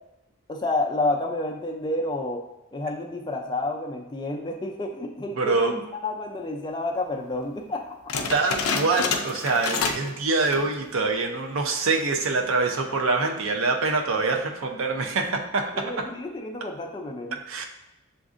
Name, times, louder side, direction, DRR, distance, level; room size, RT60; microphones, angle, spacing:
voice 1, 0.5-2.5 2.7-7.8 15.7-17.4, left 2 dB, 20° left, 2 dB, 0.3 m, -30 dB
voice 2, 5.4-5.7 8.3-16.1 17.5-17.7, right 3 dB, 80° right, 4 dB, 0.5 m, -25 dB
sound 1, 8.1-10.2 10.4-10.8 11.3-11.4 12.0-12.4, left 5 dB, 85° left, 0.4 m, -28 dB
7.0 x 2.5 x 2.4 m, 0.91 s
head